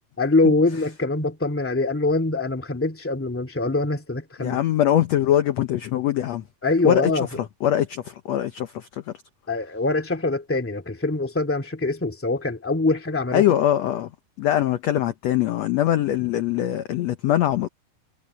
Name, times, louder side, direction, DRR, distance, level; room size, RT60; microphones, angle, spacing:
voice 1, 0.2-4.6 6.6-7.3 9.5-13.4, left 2 dB, 5° left, 1.7 m, -23 dB
voice 2, 4.4-6.4 6.8-9.1 13.3-14.1 14.4-17.7, left 12 dB, 75° left, 1.6 m, -22 dB
omnidirectional pair, 4.1 m